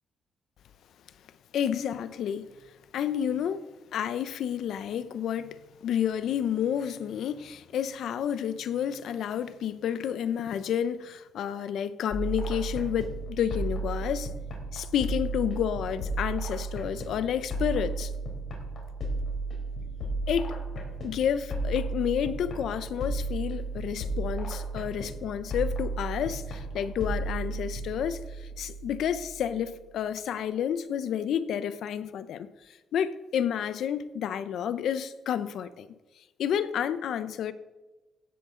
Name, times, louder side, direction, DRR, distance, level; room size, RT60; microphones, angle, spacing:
voice 1, 1.5-2.5 2.9-3.6 3.9-14.3 14.7-18.1 20.3-20.5 21.0-32.5 32.9-35.9 36.4-37.5, left 9 dB, 70° left, 13 dB, 0.8 m, -30 dB
sound 1, 12.1-29.7, right 2 dB, 55° left, 4.0 m, -34 dB
16.0 x 10.5 x 3.9 m, 1.1 s
cardioid pair, 90°, 0 cm